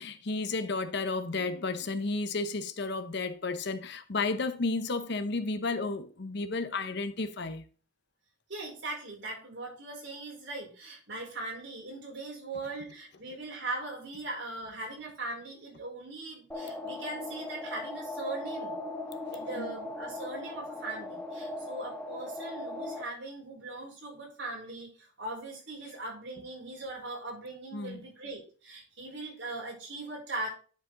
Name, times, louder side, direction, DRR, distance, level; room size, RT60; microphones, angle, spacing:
voice 1, 0.0-7.6 19.6-19.7 27.7-28.0, left 3 dB, 60° left, 0.8 m, -32 dB
voice 2, 8.5-18.8 19.3-30.5, right 2 dB, 65° right, 4.3 m, -40 dB
sound 1, 16.5-23.0, left 2 dB, 5° left, 1.0 m, -39 dB
10.5 x 4.9 x 3.9 m
head